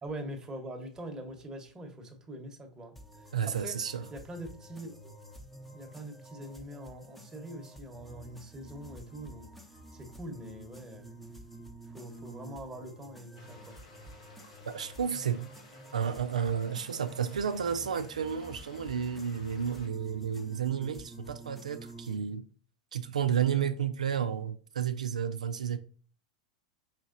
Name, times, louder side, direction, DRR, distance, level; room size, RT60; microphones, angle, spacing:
voice 1, 0.0-3.8 4.1-5.0 5.7-11.2 11.9-13.8, right 1 dB, 15° right, 1.0 m, -44 dB
sound 1, 3.0-22.2, right 1 dB, 5° left, 0.7 m, -50 dB
voice 2, 3.3-4.1 14.7-15.5 15.9-22.4 22.9-25.8, right 8 dB, 85° right, 0.3 m, -31 dB
sound 2, 13.3-19.9, left 2 dB, 80° left, 1.2 m, -56 dB
4.7 x 2.9 x 2.5 m
hypercardioid pair, 100°, 4 cm